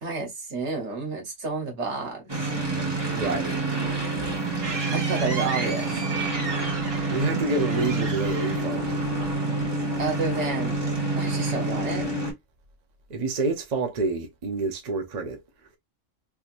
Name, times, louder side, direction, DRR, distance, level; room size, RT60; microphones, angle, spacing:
voice 1, 0.0-2.5 4.9-5.9 10.0-10.8 11.1-12.1, right 3 dB, 60° right, 1.5 m, -30 dB
sound 1, 2.3-12.3, right 2 dB, 20° right, 1.2 m, -27 dB
voice 2, 3.1-3.6 7.1-9.1 13.1-15.4, right 3 dB, 40° right, 0.7 m, -28 dB
sound 2, 3.6-9.5, right 5 dB, 80° right, 1.3 m, -36 dB
3.4 x 2.9 x 2.5 m
omnidirectional pair, 1.3 m